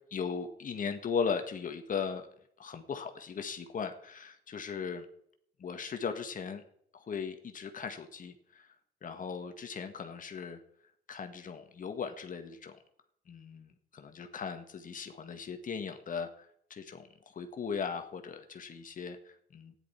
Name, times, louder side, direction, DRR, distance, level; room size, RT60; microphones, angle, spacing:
voice 1, 0.1-2.3 2.6-5.1 5.6-6.6 6.9-8.7 9.0-10.6 11.1-12.8 13.3-19.7, left 6 dB, 50° left, 7 dB, 1.6 m, -38 dB
13.5 x 10.5 x 4.4 m, 0.67 s
cardioid pair, 75°, 18 cm